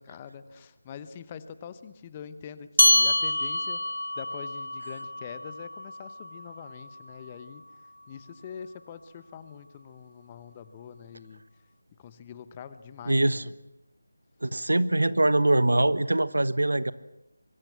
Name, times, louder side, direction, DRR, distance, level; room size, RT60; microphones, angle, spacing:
voice 1, 0.0-7.6 8.1-11.4 12.0-13.5, left 7 dB, 20° left, 13 dB, 1.0 m, -44 dB
sound 1, 2.8-7.6, left 1 dB, 80° left, 1.1 m, -27 dB
voice 2, 13.1-13.4 14.4-16.9, right 2 dB, 65° right, 15 dB, 1.2 m, -23 dB
24.0 x 24.0 x 7.6 m, 0.90 s
figure-of-eight pair, 160°, 0 cm